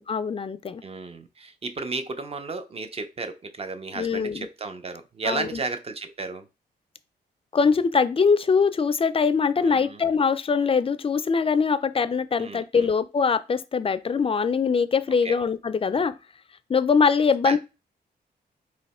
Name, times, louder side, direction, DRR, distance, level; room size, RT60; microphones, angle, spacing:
voice 1, 0.0-0.8 3.9-4.5 5.3-5.6 7.5-16.1 16.7-17.6, left 5 dB, 35° left, 0.4 m, -22 dB
voice 2, 0.8-6.5 9.6-10.0 12.4-12.9 15.2-15.3 17.4-17.6, right 3 dB, 35° right, 0.6 m, -33 dB
3.2 x 2.9 x 4.2 m
cardioid pair, 95°, 17 cm